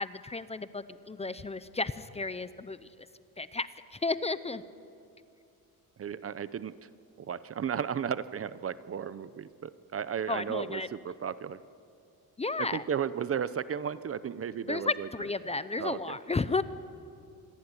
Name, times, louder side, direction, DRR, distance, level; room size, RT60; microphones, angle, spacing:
voice 1, 0.0-2.9 3.4-4.6 10.3-10.9 12.4-12.8 14.7-16.6, left 3 dB, 20° left, 14 dB, 0.6 m, -33 dB
voice 2, 6.0-6.7 7.3-11.6 12.6-15.1 15.8-16.2, right 8 dB, 40° right, 15 dB, 0.7 m, -34 dB
26.5 x 22.5 x 9.8 m, 2.5 s
wide cardioid pair, 165°, 36 cm